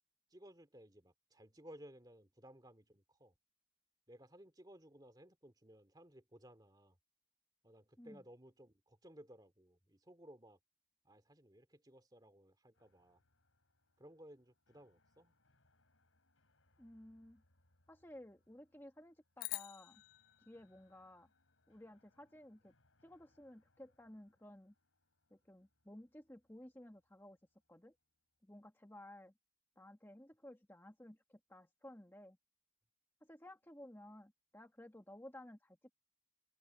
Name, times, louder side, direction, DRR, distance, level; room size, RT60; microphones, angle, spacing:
voice 1, 0.3-3.3 4.1-7.0 7.6-10.6 11.0-13.2 14.0-15.4, equal, 20° right, 2.5 m, -59 dB
sound 1, 12.7-28.7, left 2 dB, 80° left, 4.6 m, -79 dB
voice 2, 16.8-17.4 17.9-20.0 20.4-21.3 21.7-22.7 23.0-24.7 25.3-27.4 27.7-27.9 28.4-29.3 29.8-32.4 33.2-35.9, left 1 dB, 10° left, 1.4 m, -56 dB
sound 2, 19.4-21.8, left 18 dB, 45° left, 0.4 m, -48 dB
open air
head